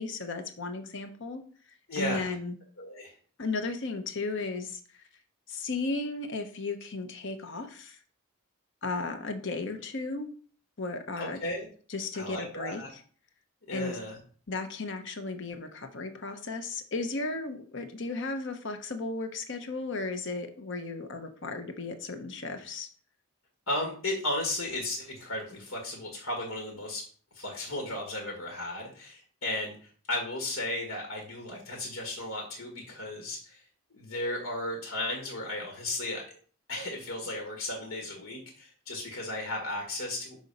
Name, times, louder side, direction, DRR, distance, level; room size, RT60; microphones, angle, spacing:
voice 1, 0.0-1.4 1.9-2.5 3.4-4.8 5.5-8.0 8.8-10.3 10.8-11.4 11.9-13.0 13.7-14.0 14.5-22.9, left 3 dB, 60° left, 7 dB, 0.9 m, -35 dB
voice 2, 1.9-2.3 2.8-3.1 11.2-11.7 12.1-12.9 13.7-14.2 23.7-27.0 27.4-33.6 33.9-36.2 36.7-40.4, left 1 dB, 90° left, 0 dB, 1.8 m, -35 dB
6.2 x 4.0 x 5.4 m, 0.44 s
head